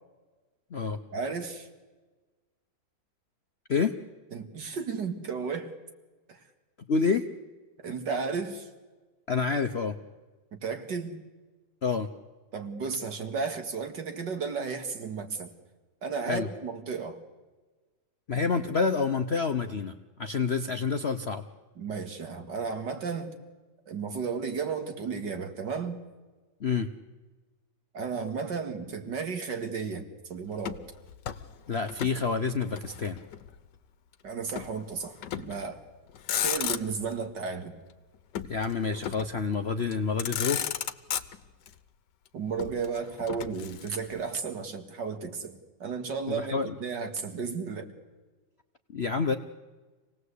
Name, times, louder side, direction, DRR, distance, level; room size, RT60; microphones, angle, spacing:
voice 1, 1.1-1.7 4.3-5.7 6.3-6.4 7.8-8.7 10.5-11.2 12.5-15.5 16.0-17.2 21.8-23.4 23.9-26.0 27.9-30.8 34.2-35.8 36.4-37.7 42.3-47.9, right 5 dB, 65° right, 6 dB, 2.6 m, -34 dB
voice 2, 6.9-7.3 9.3-9.9 11.8-12.1 16.2-16.5 18.3-19.9 20.2-21.4 26.6-26.9 31.7-33.2 38.4-40.6 46.3-46.7 48.9-49.4, left 5 dB, 50° left, 7 dB, 0.8 m, -28 dB
Motor vehicle (road), 30.6-32.2 32.5-33.6 34.6-34.8 35.2-35.7 36.1-37.2 38.3-39.4 39.9-40.0 40.2-41.7 42.6-44.2, left 10 dB, 65° left, 1.5 m, -34 dB
26.5 x 18.5 x 8.3 m, 1.3 s
omnidirectional pair, 2.1 m